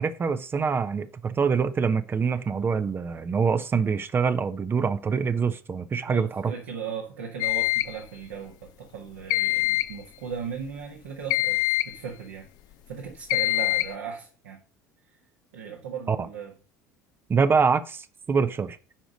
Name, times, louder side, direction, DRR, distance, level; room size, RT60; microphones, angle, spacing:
voice 1, 0.0-6.5 16.1-16.3 17.3-18.8, right 5 dB, 25° right, 0.6 m, -25 dB
voice 2, 6.1-12.5 12.9-14.6 15.5-16.5, right 7 dB, 65° right, 1.5 m, -37 dB
sound 1, 7.4-8.0 9.3-10.0 11.3-12.0 13.3-13.9, left 18 dB, 50° left, 0.5 m, -24 dB
9.7 x 5.0 x 5.2 m
figure-of-eight pair, 65°, 9 cm